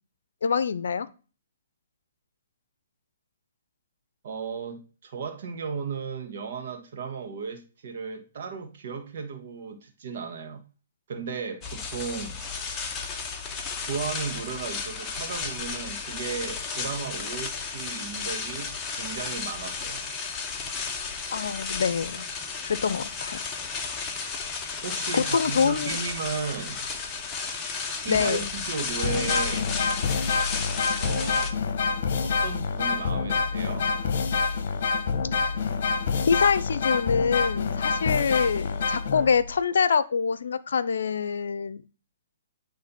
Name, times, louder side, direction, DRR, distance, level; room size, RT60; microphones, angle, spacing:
voice 1, 0.4-1.1 21.3-22.3 22.6-23.4 25.1-26.0 28.1-28.4 35.4-35.5 36.3-41.8, left 6 dB, 75° left, 0.6 m, -25 dB
voice 2, 4.2-10.6 11.1-12.4 13.8-18.7 19.0-20.1 24.8-26.9 28.0-29.8 31.0-31.6 32.2-33.9, right 5 dB, 60° right, 1.6 m, -35 dB
sound 1, 11.6-31.5, left 5 dB, 20° left, 1.0 m, -33 dB
sound 2, 29.0-39.6, left 5 dB, 55° left, 1.1 m, -27 dB
9.8 x 3.3 x 4.2 m
hypercardioid pair, 145°, 0 cm